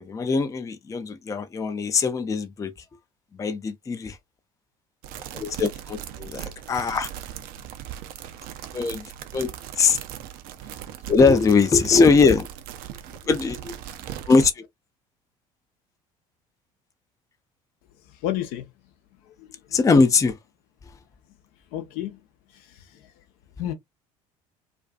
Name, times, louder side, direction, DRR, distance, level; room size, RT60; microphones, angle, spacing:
voice 1, 0.0-2.7 3.4-4.2 5.3-7.1 8.7-9.1 9.3-9.5 9.8-10.0 11.1-12.5 13.3-13.7 14.3-14.7 19.7-20.4, left 4 dB, 20° left, 0.4 m, -21 dB
sound 1, 5.0-14.5, right 11 dB, 55° right, 0.5 m, -38 dB
voice 2, 18.2-18.7 21.7-22.2 23.6-23.7, left 12 dB, 60° left, 0.6 m, -29 dB
2.4 x 2.3 x 2.3 m
hypercardioid pair, 60°, 18 cm